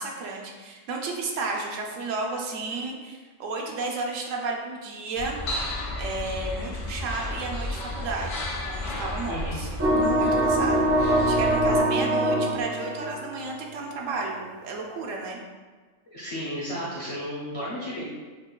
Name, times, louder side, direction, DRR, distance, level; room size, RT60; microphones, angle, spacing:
voice 1, 0.0-5.4 6.0-15.4, right 3 dB, 85° right, 0 dB, 1.0 m, -33 dB
sound 1, 5.2-11.8, left 1 dB, 75° left, 1.1 m, -33 dB
sound 2, 9.8-13.7, right 1 dB, 20° right, 0.4 m, -23 dB
voice 2, 16.1-18.1, equal, 40° left, -6 dB, 0.5 m, -33 dB
5.2 x 2.2 x 2.3 m, 1.4 s
omnidirectional pair, 1.3 m